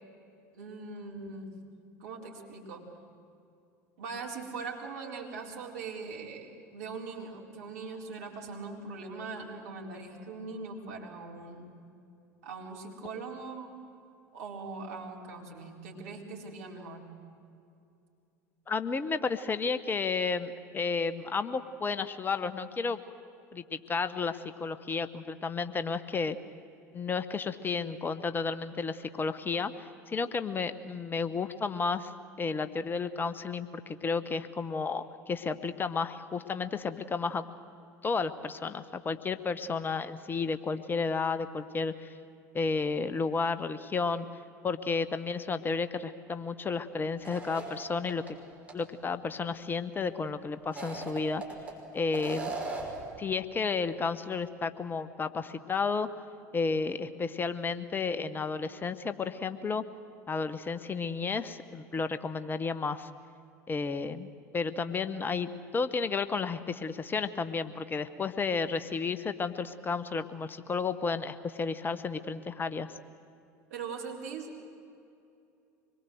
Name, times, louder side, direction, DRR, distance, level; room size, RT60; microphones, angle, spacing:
voice 1, 0.6-1.6 2.0-2.9 4.0-11.7 12.4-13.7 14.3-17.0 73.7-74.5, right 4 dB, 65° right, 0 dB, 4.2 m, -41 dB
voice 2, 18.7-23.0 23.5-26.4 26.9-32.1 32.4-37.4 38.0-42.1 42.5-44.3 44.6-48.4 48.7-51.4 51.9-52.6 53.2-56.1 56.5-59.8 60.3-63.1 63.7-72.9, left 4 dB, 25° left, 12 dB, 1.0 m, -32 dB
sound 1, 47.2-48.3 48.7-48.8 50.6-51.7 52.1-53.0, right 3 dB, 15° right, 5.9 m, -38 dB
25.5 x 22.0 x 7.9 m, 2.6 s
figure-of-eight pair, 75°, 9 cm